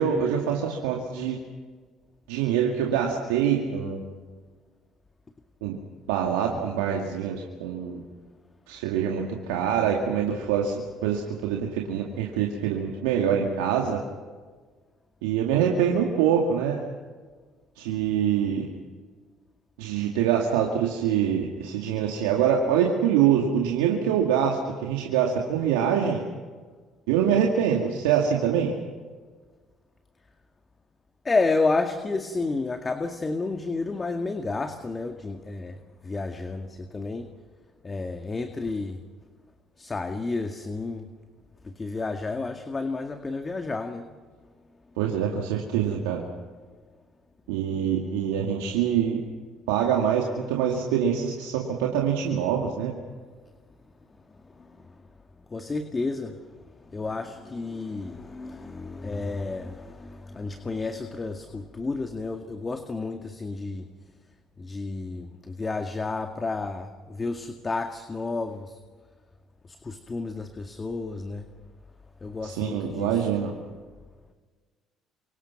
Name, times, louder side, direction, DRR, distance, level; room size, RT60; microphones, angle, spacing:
voice 1, 0.0-1.4 2.3-4.0 5.6-5.8 6.1-8.0 8.7-14.0 15.2-16.8 17.8-18.6 19.8-26.2 27.1-28.7 45.0-46.2 47.5-49.2 49.7-53.0 72.4-73.5, right 8 dB, 85° right, 1 dB, 2.3 m, -25 dB
voice 2, 31.3-35.8 36.0-37.3 37.8-39.0 39.8-41.1 41.8-44.1 55.5-56.3 56.9-63.9 64.6-68.7 69.8-71.5 72.2-73.3, left 3 dB, 30° left, 6 dB, 2.0 m, -31 dB
29.0 x 25.5 x 6.0 m, 1.5 s
hypercardioid pair, 65°, 0 cm